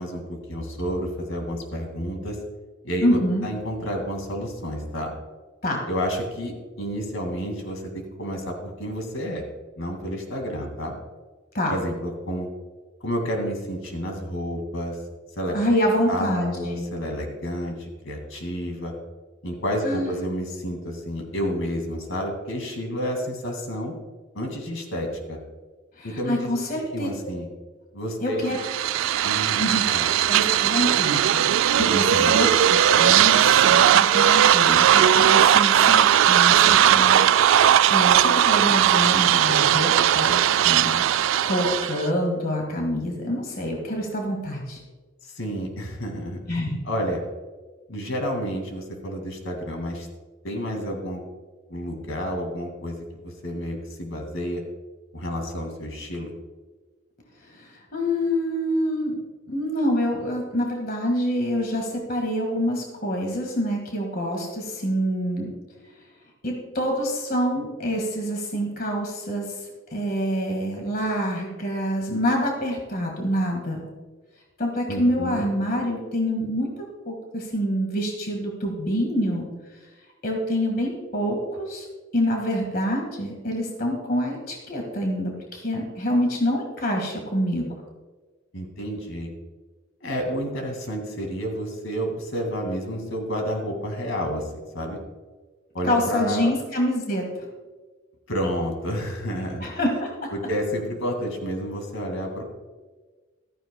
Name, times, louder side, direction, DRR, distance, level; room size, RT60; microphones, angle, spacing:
voice 1, 0.0-2.4 2.8-5.1 5.9-9.4 9.8-10.9 11.7-12.5 13.0-15.0 15.4-15.6 16.1-18.9 19.4-23.9 24.3-25.4 26.0-26.6 26.9-27.5 27.9-28.4 29.2-30.1 31.9-32.4 45.2-46.4 46.8-47.2 47.9-50.1 50.4-51.2 51.7-53.0 53.2-54.6 55.1-56.3 74.9-75.4 88.5-89.3 90.0-94.5 94.7-95.0 95.7-96.5 98.3-99.7 100.3-102.4, equal, 70° left, 3 dB, 2.2 m, -30 dB
voice 2, 3.0-3.4 5.6-5.8 11.5-11.7 15.5-16.9 19.8-20.2 26.0-27.1 28.2-28.6 29.6-29.8 30.3-31.5 31.8-40.4 40.6-41.0 41.4-44.8 46.5-46.8 57.5-59.1 59.5-65.5 66.4-73.8 74.6-79.5 80.2-81.9 82.1-87.7 95.8-97.2 99.6-100.3, equal, 45° left, 1 dB, 1.8 m, -26 dB
sound 1, 28.5-42.1, right 10 dB, 70° right, 0.3 m, -18 dB
14.5 x 13.5 x 2.3 m, 1.3 s
head